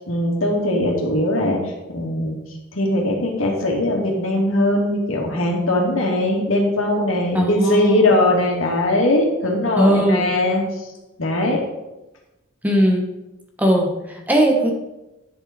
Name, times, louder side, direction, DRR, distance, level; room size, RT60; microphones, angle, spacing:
voice 1, 0.1-2.4 2.7-10.9 11.2-11.6, left 1 dB, 85° left, -1 dB, 2.4 m, -20 dB
voice 2, 7.3-8.0 9.8-10.3 12.6-13.0 13.6-14.7, equal, 10° right, 0 dB, 1.3 m, -18 dB
10.5 x 7.3 x 4.4 m, 0.98 s
head